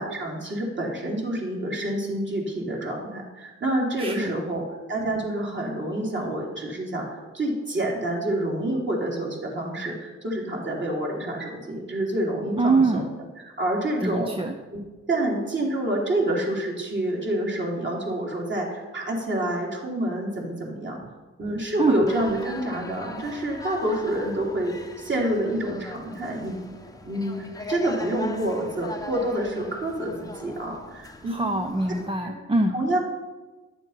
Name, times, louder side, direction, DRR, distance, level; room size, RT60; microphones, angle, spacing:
voice 1, 0.0-4.6 4.9-13.0 13.4-14.3 14.7-14.8 15.1-21.0 21.4-26.7 27.0-31.5 32.2-32.3 32.7-33.0, right 1 dB, 35° right, -2 dB, 3.4 m, -28 dB
voice 2, 4.0-4.4 12.6-13.1 14.0-14.5 21.8-22.0 31.3-32.7, right 3 dB, 15° right, 5 dB, 0.7 m, -24 dB
sound 1, 22.1-32.1, left 2 dB, 10° left, 1.0 m, -40 dB
11.5 x 7.1 x 5.7 m, 1.2 s
cardioid pair, 85°, 31 cm